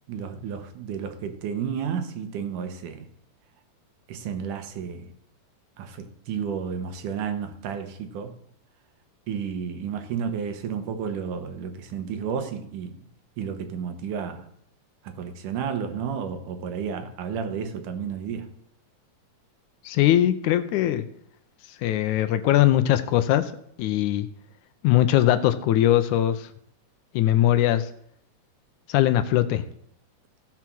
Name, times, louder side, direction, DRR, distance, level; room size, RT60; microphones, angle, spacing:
voice 1, 0.1-3.1 4.1-5.1 5.8-8.3 9.3-12.9 13.4-14.5 15.0-18.5, right 7 dB, 80° right, 2.7 m, -32 dB
voice 2, 19.9-21.0 21.8-23.5 23.8-24.3 24.8-26.5 27.1-27.9 28.9-29.6, left 13 dB, 80° left, 2.0 m, -21 dB
15.5 x 5.8 x 6.1 m
omnidirectional pair, 3.6 m